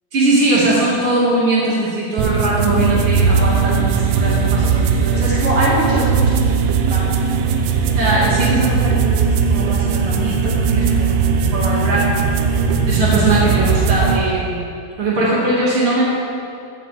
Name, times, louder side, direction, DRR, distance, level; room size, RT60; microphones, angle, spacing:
voice 1, 0.1-6.4 6.9-7.0 7.9-9.2 9.5-12.4 12.9-14.7 15.0-16.0, right 2 dB, 75° right, -7 dB, 1.2 m, -20 dB
sound 1, 2.2-14.2, right 5 dB, 90° right, 3.1 m, -18 dB
14.5 x 9.3 x 3.2 m, 2.5 s
omnidirectional pair, 5.2 m